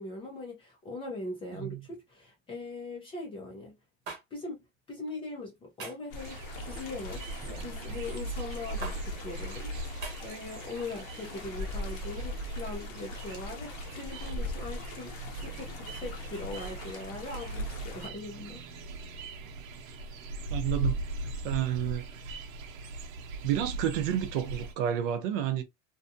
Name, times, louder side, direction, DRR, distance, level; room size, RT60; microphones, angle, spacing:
voice 1, 0.0-3.8 4.3-4.6 4.9-6.4 6.7-7.3 7.6-18.6, left 2 dB, 15° left, 0.4 m, -41 dB
sound 1, 4.1-4.2 5.8-6.1 7.4-7.7 8.8-9.0 10.0-10.2, right 4 dB, 25° right, 0.9 m, -40 dB
sound 2, 6.1-18.1, left 2 dB, 45° left, 0.7 m, -42 dB
sound 3, 6.2-24.7, right 2 dB, 90° right, 0.8 m, -39 dB
voice 2, 20.5-21.0 21.2-22.4 23.4-25.6, right 11 dB, 45° right, 0.5 m, -30 dB
2.7 x 2.3 x 2.5 m
supercardioid pair, 155°, 39 cm